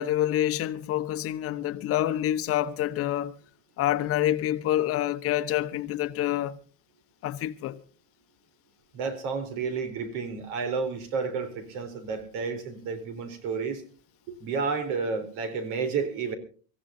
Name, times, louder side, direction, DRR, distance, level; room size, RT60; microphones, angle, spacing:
voice 1, 0.0-3.3 3.8-6.6 7.2-7.8, left 13 dB, 45° left, 1.0 m, -27 dB
voice 2, 8.9-13.8 14.3-16.3, right 5 dB, 80° right, 3.8 m, -31 dB
25.5 x 15.0 x 2.7 m
cardioid pair, 155°, 32 cm